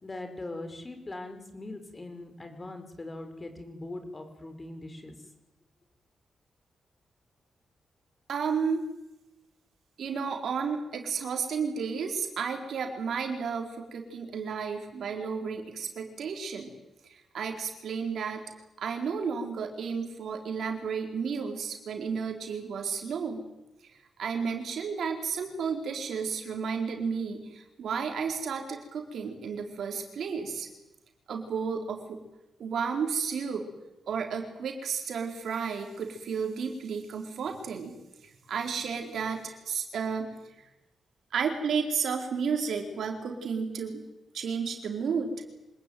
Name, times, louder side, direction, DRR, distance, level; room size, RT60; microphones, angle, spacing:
voice 1, 0.0-5.2, left 2 dB, 30° left, 7 dB, 5.8 m, -41 dB
voice 2, 8.3-8.9 10.0-16.7 17.1-18.5 18.8-23.4 23.8-23.9 24.2-30.7 31.3-32.2 32.6-33.7 34.1-38.0 38.2-40.3 40.6-40.7 41.3-44.0 44.3-45.3, right 6 dB, 75° right, 4 dB, 4.6 m, -32 dB
26.0 x 19.5 x 9.5 m, 0.96 s
cardioid pair, 60°, 0 cm